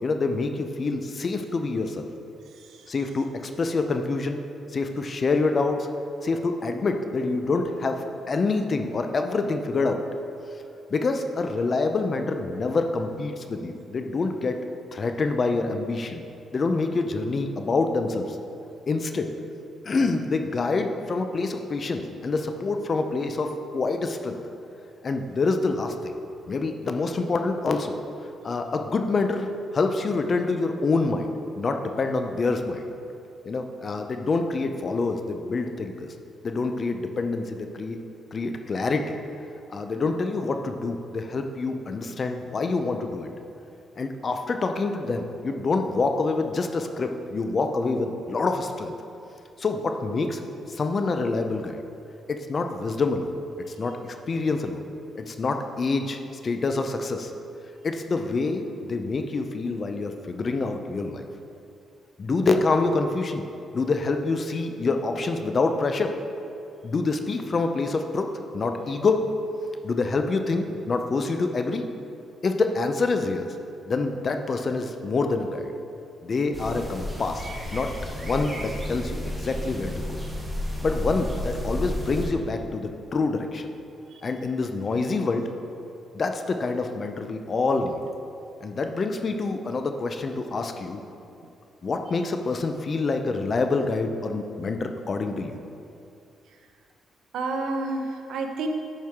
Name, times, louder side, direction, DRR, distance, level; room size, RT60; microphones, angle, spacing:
voice 1, 0.0-2.1 2.9-4.4 4.7-5.9 6.2-10.0 10.9-14.6 14.9-16.2 16.5-18.4 18.9-19.3 19.8-24.4 25.0-26.1 26.5-28.0 28.4-29.5 29.7-31.3 31.6-32.9 33.5-36.1 36.4-38.0 38.3-39.2 39.7-43.3 44.0-48.9 49.6-50.4 50.7-51.8 52.3-54.8 55.2-57.3 57.8-61.3 62.2-63.4 63.7-66.1 66.8-68.3 68.5-69.3 69.8-71.9 72.4-73.5 73.9-75.7 76.2-77.4 77.7-77.9 78.2-80.2 80.8-83.7 84.2-85.5 86.1-88.0 88.6-91.0 91.8-95.6, left 3 dB, 40° left, 6 dB, 0.5 m, -26 dB
voice 2, 2.5-2.9 84.1-84.2 97.3-98.7, right 3 dB, 80° right, 3 dB, 0.7 m, -31 dB
sound 1, 76.5-82.3, equal, 10° right, 1.3 m, -32 dB
10.5 x 4.6 x 3.6 m, 2.6 s
cardioid pair, 110°, 0 cm